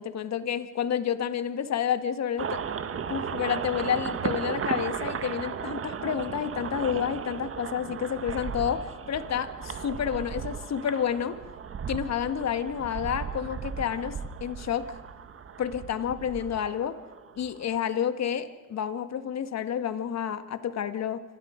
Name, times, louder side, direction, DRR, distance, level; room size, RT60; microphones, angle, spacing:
voice 1, 0.0-2.6 3.1-11.4 11.9-15.0 15.6-17.0 17.4-21.2, left 8 dB, 40° left, 10 dB, 1.9 m, -30 dB
sound 1, 2.4-17.8, right 7 dB, 35° right, 1.7 m, -36 dB
27.5 x 25.5 x 5.3 m, 1.4 s
hypercardioid pair, 75°, 39 cm